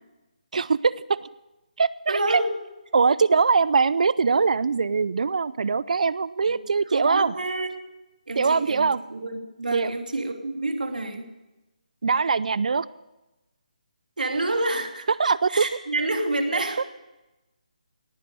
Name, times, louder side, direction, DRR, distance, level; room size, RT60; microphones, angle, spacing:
voice 1, 0.5-1.0 1.8-2.4 2.9-7.3 8.4-9.0 9.7-9.9 12.0-12.9 15.2-15.6, right 5 dB, 60° right, 19 dB, 0.5 m, -22 dB
voice 2, 2.1-2.6 6.4-6.6 6.9-7.8 8.3-11.3 14.2-15.1 15.5-16.9, right 2 dB, 90° right, 4 dB, 3.0 m, -28 dB
18.0 x 10.5 x 6.8 m, 1.0 s
hypercardioid pair, 165°, 4 cm